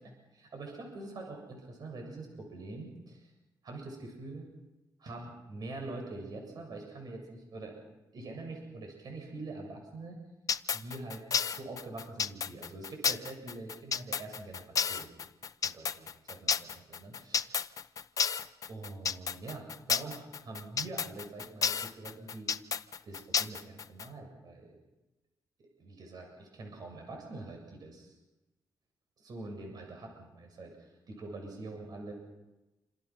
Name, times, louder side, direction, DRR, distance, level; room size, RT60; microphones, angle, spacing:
voice 1, 0.3-3.3 3.6-4.5 5.0-7.8 8.1-10.2 10.7-15.1 15.6-17.7 18.7-22.5 23.0-24.7 25.6-28.2 29.2-32.1, right 2 dB, 60° right, 2 dB, 7.5 m, -44 dB
sound 1, 10.5-24.1, left 6 dB, 50° left, 0.9 m, -31 dB
28.5 x 26.0 x 6.2 m, 1.0 s
cardioid pair, 120°, 8 cm